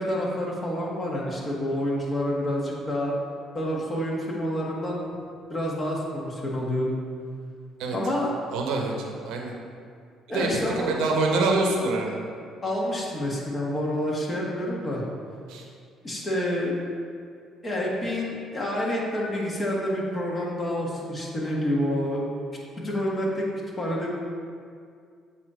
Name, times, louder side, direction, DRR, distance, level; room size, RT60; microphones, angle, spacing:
voice 1, 0.0-3.1 3.5-5.1 5.5-6.9 7.9-8.3 10.3-11.0 12.6-15.0 16.0-16.8 17.6-22.3 22.8-23.5 23.8-24.1, left 1 dB, 30° left, -3 dB, 1.5 m, -28 dB
voice 2, 8.5-9.5 10.3-10.5 10.8-12.2 15.5-15.6, right 3 dB, 80° right, 1 dB, 0.9 m, -25 dB
8.0 x 2.9 x 4.9 m, 2.2 s
supercardioid pair, 75°, 0 cm